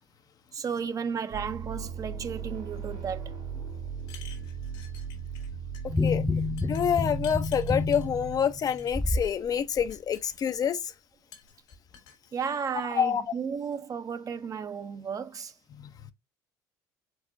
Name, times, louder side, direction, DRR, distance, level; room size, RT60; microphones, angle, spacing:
voice 1, 0.5-3.3 12.3-15.5, right 6 dB, 40° right, 0.7 m, -34 dB
sound 1, 1.3-8.7, right 7 dB, 70° right, 2.1 m, -38 dB
sound 2, 4.0-5.5 5.7-6.1 6.6-8.1 8.7-9.3 9.7-10.8 11.3-12.2, left 7 dB, 80° left, 1.7 m, -51 dB
sound 3, 5.9-9.3 9.8-9.9, left 3 dB, 5° left, 0.3 m, -29 dB
voice 2, 6.6-10.9 13.0-13.2 15.7-15.9, left 8 dB, 45° left, 0.6 m, -27 dB
4.7 x 3.9 x 2.5 m
supercardioid pair, 80°, 9 cm